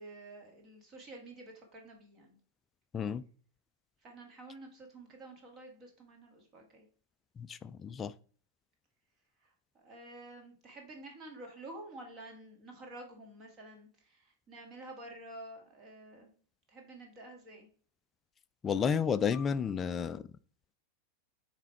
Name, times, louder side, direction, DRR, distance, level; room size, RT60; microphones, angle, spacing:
voice 1, 0.0-2.4 4.0-6.9 9.4-16.3 16.7-17.7, right 2 dB, 30° right, 1.7 m, -50 dB
voice 2, 7.4-8.1 18.6-20.2, left 7 dB, 20° left, 0.3 m, -31 dB
8.2 x 3.3 x 4.5 m
figure-of-eight pair, 90°, 0 cm